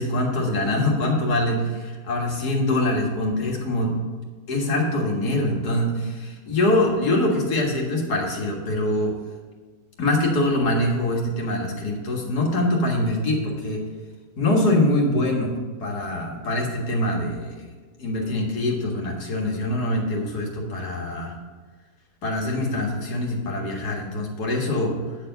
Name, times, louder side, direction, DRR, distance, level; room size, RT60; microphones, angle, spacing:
voice 1, 0.0-4.0 4.5-9.1 10.0-13.8 14.4-17.6 18.0-21.3 22.2-25.0, left 1 dB, 90° left, -1 dB, 2.2 m, -24 dB
9.4 x 4.6 x 6.7 m, 1.4 s
omnidirectional pair, 1.6 m